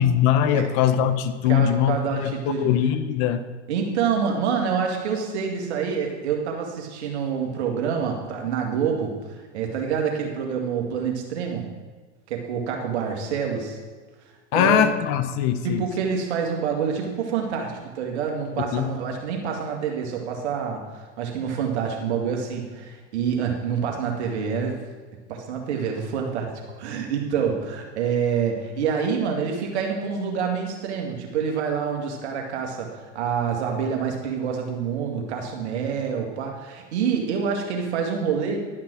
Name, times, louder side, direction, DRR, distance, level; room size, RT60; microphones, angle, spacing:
voice 1, 0.0-3.4 14.5-15.8 18.7-18.9, left 9 dB, 50° left, 12 dB, 0.9 m, -21 dB
voice 2, 1.5-2.7 3.7-9.2 9.5-11.7 12.3-13.8 14.5-15.0 15.6-24.8 25.3-38.6, right 6 dB, 70° right, 2 dB, 2.2 m, -27 dB
11.5 x 5.9 x 6.2 m, 1.4 s
hypercardioid pair, 95°, 35 cm